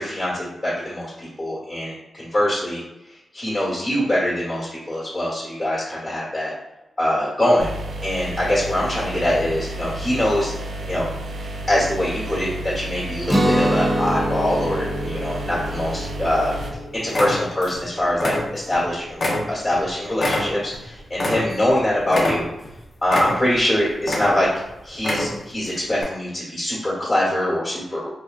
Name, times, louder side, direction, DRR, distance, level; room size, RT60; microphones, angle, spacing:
voice 1, 0.0-2.8 3.3-6.5 7.0-7.7 8.0-10.5 10.9-11.1 11.7-16.5 16.9-22.4 23.0-24.5 24.8-28.2, left 1 dB, 25° left, -7 dB, 1.0 m, -23 dB
sound 1, 7.6-16.7, right 1 dB, 70° right, 0.3 m, -32 dB
Guitar, 13.3-19.1, right 1 dB, 10° right, 0.6 m, -26 dB
sound 2, 15.6-16.2 16.6-16.8 17.1-17.8 18.1-18.8 19.2-21.8 22.1-22.7 23.1-23.6 24.0-24.6 24.9-25.5 26.0-26.1, left 1 dB, 65° left, 0.6 m, -25 dB
2.7 x 2.1 x 2.3 m, 0.95 s
supercardioid pair, 45°, 0 cm